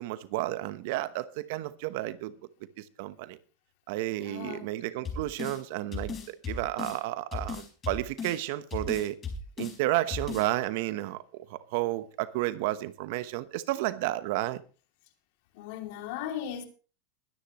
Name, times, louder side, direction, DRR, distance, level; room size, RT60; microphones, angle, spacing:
voice 1, 0.0-2.3 2.8-3.4 3.9-9.2 9.6-14.6, right 16 dB, 65° right, 1.1 m, -32 dB
voice 2, 4.2-4.7 15.5-16.6, left 10 dB, 65° left, 2.9 m, -37 dB
sound 1, 5.0-5.6 5.9-7.0 7.3-8.4 8.7-9.8 10.1-10.5, left 4 dB, 25° left, 5.0 m, -36 dB
22.0 x 10.0 x 3.1 m
supercardioid pair, 120°, 0 cm